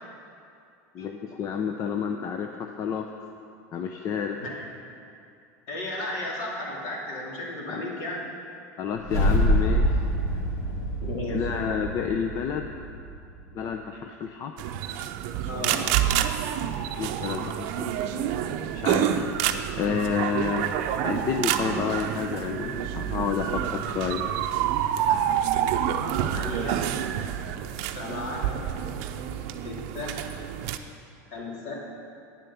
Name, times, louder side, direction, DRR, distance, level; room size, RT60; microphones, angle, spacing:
voice 1, 0.9-3.1 3.7-4.4 7.7-7.8 8.8-10.0 11.3-12.7 13.5-14.5 16.9-18.3 18.7-19.1 19.8-20.7 21.0-24.2, left 7 dB, 40° left, 5 dB, 0.6 m, -30 dB
voice 2, 5.7-8.3 11.0-11.5 15.5-16.0 25.1-25.3 26.2-26.9 27.9-28.7 29.6-30.2 31.3-31.7, left 2 dB, 65° left, -3 dB, 3.0 m, -34 dB
sound 1, 9.0-13.3, equal, 85° left, 3.2 m, -25 dB
sound 2, 14.6-30.8, right 10 dB, 60° right, 0.6 m, -28 dB
9.9 x 7.5 x 6.9 m, 2.5 s
supercardioid pair, 120°, 9 cm